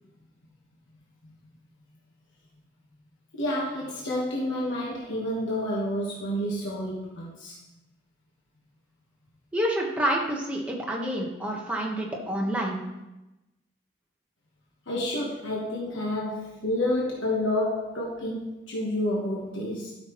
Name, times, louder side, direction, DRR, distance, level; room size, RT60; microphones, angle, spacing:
voice 1, 3.3-7.6 14.9-19.9, left 1 dB, 90° left, -4 dB, 1.4 m, -29 dB
voice 2, 9.5-12.8, right 1 dB, 5° right, -2 dB, 1.2 m, -28 dB
12.5 x 5.8 x 3.1 m, 0.99 s
head